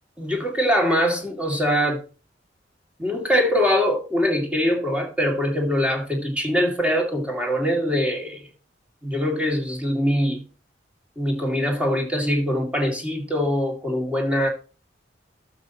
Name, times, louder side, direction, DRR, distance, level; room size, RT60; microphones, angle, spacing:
voice 1, 0.2-2.0 3.0-8.4 9.0-10.4 11.2-14.5, equal, 5° right, 2.3 m, -23 dB
12.0 x 7.0 x 2.9 m
head